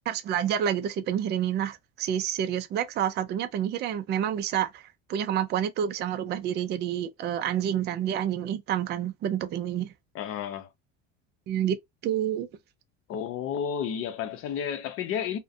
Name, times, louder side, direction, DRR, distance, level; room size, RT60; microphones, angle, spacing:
voice 1, 0.1-4.8 5.1-9.9 11.5-11.8 12.0-12.5, right 10 dB, 35° right, 0.4 m, -28 dB
voice 2, 10.1-10.7 13.1-15.4, left 8 dB, 50° left, 0.7 m, -31 dB
2.4 x 2.2 x 2.5 m
supercardioid pair, 125°, 29 cm